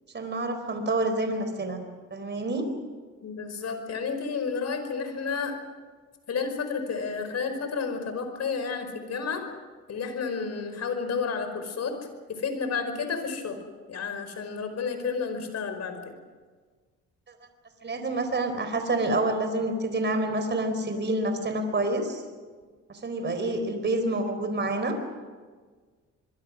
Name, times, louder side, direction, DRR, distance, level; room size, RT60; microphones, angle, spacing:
voice 1, 0.1-1.8 2.1-2.7 17.8-22.2 22.9-25.0, right 2 dB, 35° right, 7 dB, 4.2 m, -28 dB
voice 2, 3.2-5.6 6.3-9.4 9.9-12.0 12.3-13.6 13.9-16.1, left 5 dB, 60° left, 7 dB, 5.1 m, -31 dB
26.5 x 22.5 x 6.3 m, 1.5 s
cardioid pair, 90°, 30 cm